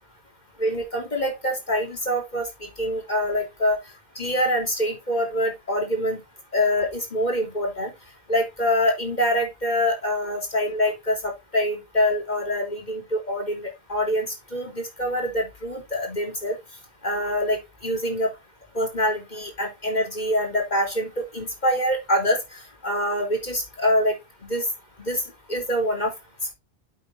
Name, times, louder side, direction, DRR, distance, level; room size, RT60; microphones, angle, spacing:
voice 1, 0.6-3.8 4.2-6.2 6.5-7.9 8.3-16.6 17.0-18.3 18.7-24.7 25.0-25.2 25.5-26.1, equal, 45° left, 3 dB, 3.6 m, -25 dB
9.9 x 8.2 x 2.7 m, 0.22 s
omnidirectional pair, 1.1 m